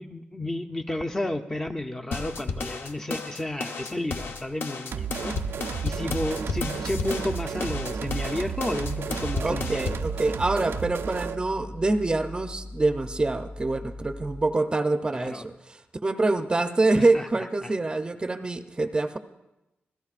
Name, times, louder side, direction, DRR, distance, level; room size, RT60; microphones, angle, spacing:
voice 1, 0.0-5.3 5.8-9.9 15.1-15.4 16.9-17.3 17.6-17.7, left 1 dB, 15° left, 6 dB, 0.6 m, -32 dB
sound 1, 2.1-10.1, left 4 dB, 70° left, 0.9 m, -33 dB
sound 2, 4.9-11.4, right 7 dB, 80° right, 0.5 m, -33 dB
sound 3, 7.7-14.4, left 2 dB, 35° left, 1.7 m, -41 dB
voice 2, 9.4-19.2, right 2 dB, 25° right, 9 dB, 0.6 m, -26 dB
27.0 x 16.0 x 2.5 m, 0.95 s
wide cardioid pair, 145°, 4 cm